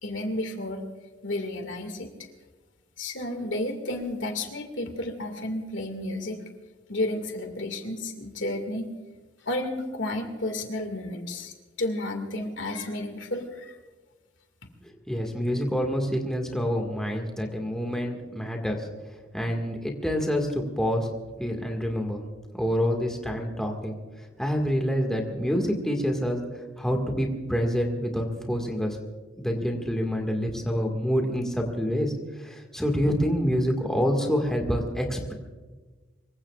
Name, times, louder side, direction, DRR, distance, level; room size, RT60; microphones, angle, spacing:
voice 1, 0.0-0.8 1.2-2.1 3.0-6.4 6.9-8.9 9.4-13.8, left 1 dB, 70° left, 5 dB, 2.2 m, -32 dB
voice 2, 15.1-18.8 19.3-21.1 21.4-22.2 22.5-24.0 24.4-26.4 26.8-29.0 29.4-35.3, equal, 5° left, 1 dB, 1.9 m, -27 dB
25.0 x 23.0 x 2.5 m, 1.3 s
head